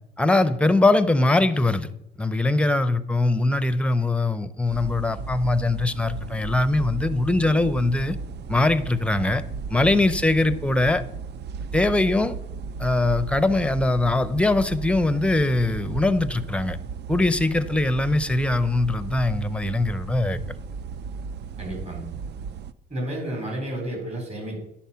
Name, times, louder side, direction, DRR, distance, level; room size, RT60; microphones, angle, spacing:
voice 1, 0.2-1.9 2.2-8.2 8.5-9.4 9.7-11.0 11.7-12.3 12.8-16.8 17.1-20.4, left 2 dB, 5° left, 12 dB, 0.6 m, -22 dB
sound 1, 4.7-22.7, right 5 dB, 60° right, 0.4 m, -35 dB
voice 2, 21.6-22.1 22.9-24.6, right 1 dB, 35° right, 0 dB, 3.9 m, -31 dB
10.5 x 4.3 x 5.6 m, 0.83 s
cardioid pair, 90°, 20 cm